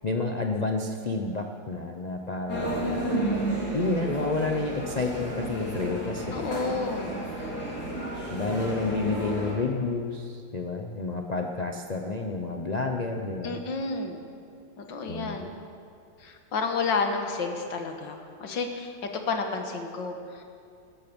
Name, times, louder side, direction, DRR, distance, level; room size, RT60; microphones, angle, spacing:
voice 1, 0.0-3.0 3.7-6.5 8.3-13.5 15.1-15.4, left 3 dB, 85° left, 3 dB, 0.3 m, -30 dB
sound 1, 2.5-9.5, right 1 dB, 55° left, 4.0 m, -32 dB
voice 2, 6.3-7.2 13.4-14.2 14.8-15.5 16.2-20.4, left 4 dB, 70° left, 4 dB, 2.1 m, -31 dB
19.0 x 13.0 x 5.3 m, 2.4 s
omnidirectional pair, 2.1 m